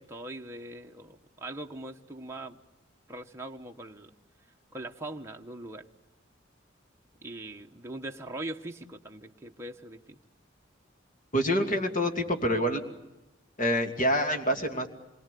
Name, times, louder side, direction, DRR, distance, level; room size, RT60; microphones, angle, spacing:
voice 1, 0.0-2.6 3.1-4.1 4.7-5.8 7.2-10.2, right 1 dB, 15° right, 2 dB, 1.2 m, -41 dB
voice 2, 11.3-12.8 13.6-14.9, equal, 40° left, 4 dB, 2.7 m, -26 dB
27.0 x 23.0 x 8.4 m, 0.96 s
head